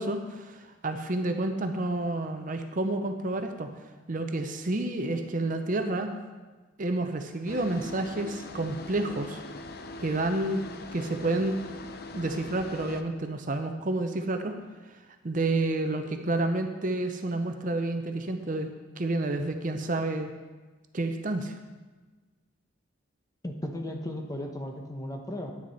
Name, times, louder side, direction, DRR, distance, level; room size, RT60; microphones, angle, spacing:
voice 1, 0.0-3.7 4.1-6.1 6.8-9.4 10.0-10.6 10.9-11.6 12.1-14.5 15.2-18.7 19.0-20.3 20.9-21.6, right 2 dB, 40° right, 6 dB, 0.6 m, -29 dB
sound 1, 7.5-13.0, left 2 dB, 50° left, 0.6 m, -42 dB
voice 2, 23.4-25.5, left 1 dB, 15° left, 2 dB, 0.9 m, -35 dB
9.6 x 9.5 x 4.1 m, 1.3 s
head